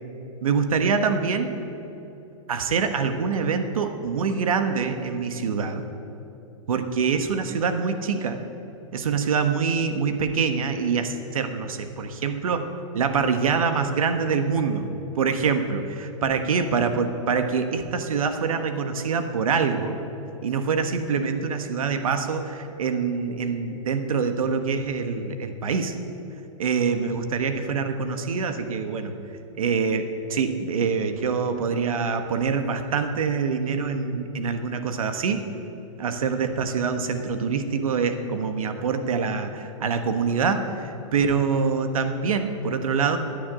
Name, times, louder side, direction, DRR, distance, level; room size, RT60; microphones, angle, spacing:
voice 1, 0.4-1.5 2.5-5.8 6.7-8.4 8.9-14.9 15.2-20.0 20.4-26.0 26.6-29.1 29.6-35.4 36.0-43.2, right 5 dB, 90° right, 8 dB, 1.3 m, -25 dB
10.0 x 10.0 x 9.7 m, 3.0 s
hypercardioid pair, 165°, 18 cm